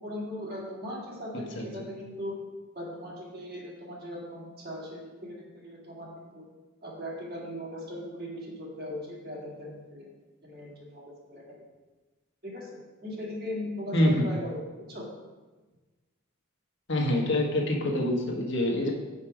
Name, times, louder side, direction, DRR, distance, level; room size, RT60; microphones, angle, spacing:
voice 1, 0.0-2.4 2.7-6.4 6.8-10.1 10.4-11.0 11.3-11.4 12.4-15.1 17.2-17.3, left 1 dB, 50° right, -4 dB, 2.2 m, -39 dB
voice 2, 13.9-14.3 16.9-18.9, left 1 dB, 60° left, 0 dB, 1.3 m, -26 dB
7.4 x 5.3 x 5.0 m, 1.2 s
head